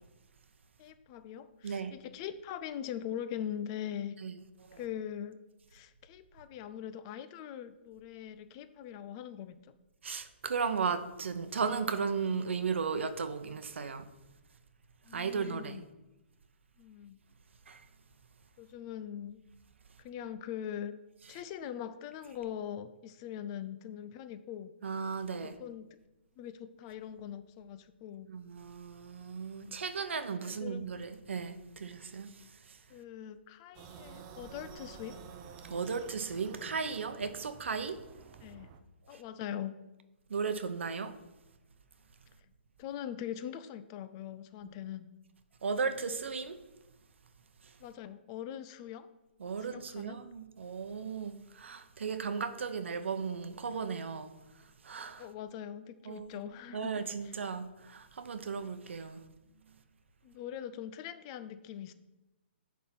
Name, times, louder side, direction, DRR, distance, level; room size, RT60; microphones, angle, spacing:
voice 1, 0.8-4.2 4.7-5.4 5.7-9.6 15.1-15.8 16.8-17.2 18.6-19.4 20.0-20.9 21.3-24.7 25.4-25.9 26.4-28.3 30.4-30.9 32.9-35.2 38.4-38.7 39.1-39.8 42.8-45.1 47.8-49.1 49.6-50.2 55.2-57.3 60.2-61.9, left 10 dB, 25° left, 0.4 m, -42 dB
voice 2, 1.6-1.9 4.2-4.3 4.7-4.8 10.0-14.1 15.1-15.8 17.7-17.8 24.8-25.6 28.3-32.8 35.6-38.0 39.1-39.2 40.3-41.1 44.6-44.7 45.6-46.6 47.6-47.7 49.4-54.3 54.8-55.3 56.0-56.4 56.7-59.2, right 5 dB, 75° right, 0.9 m, -36 dB
sound 1, 33.7-38.8, right 6 dB, 25° right, 0.6 m, -51 dB
10.5 x 3.7 x 5.9 m
hypercardioid pair, 160°, 6 cm